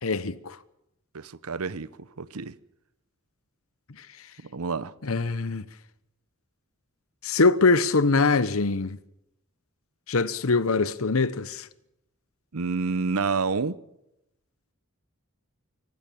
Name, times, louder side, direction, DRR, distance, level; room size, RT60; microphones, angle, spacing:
voice 1, 0.0-0.6 5.0-5.6 7.2-9.0 10.1-11.7, left 3 dB, 70° left, 1.0 m, -23 dB
voice 2, 1.1-1.9 2.2-2.5 4.5-4.9 12.5-13.8, right 4 dB, 85° right, 0.9 m, -28 dB
25.5 x 15.0 x 7.1 m
head